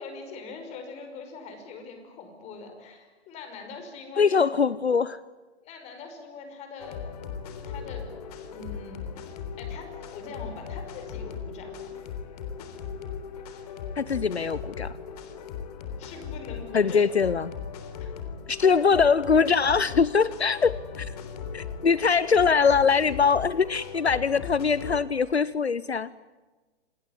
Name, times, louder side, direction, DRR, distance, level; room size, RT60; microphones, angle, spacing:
voice 1, 0.0-4.5 5.6-7.0 7.6-8.1 8.5-9.1 9.6-11.8 16.0-17.0 18.0-18.1 20.1-20.2, left 4 dB, 20° left, 6 dB, 5.4 m, -42 dB
voice 2, 4.2-5.2 14.0-14.9 16.7-17.5 18.5-21.1 21.5-26.1, left 5 dB, 75° left, 19 dB, 0.9 m, -22 dB
sound 1, 6.8-25.0, left 7 dB, 35° left, 3.5 m, -38 dB
28.0 x 19.5 x 9.7 m, 1.3 s
figure-of-eight pair, 125°, 33 cm